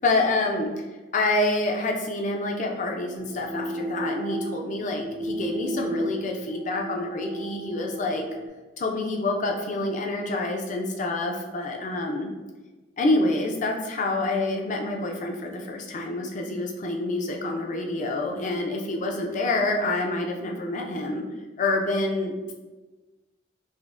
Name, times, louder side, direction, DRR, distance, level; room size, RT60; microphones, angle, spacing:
voice 1, 0.0-0.8 1.1-8.2 8.8-12.3 13.0-21.2 21.6-22.5, left 2 dB, 45° left, 2 dB, 0.5 m, -27 dB
sound 1, 3.2-8.5, right 1 dB, 70° right, 1.0 m, -34 dB
4.9 x 2.1 x 2.5 m, 1.2 s
head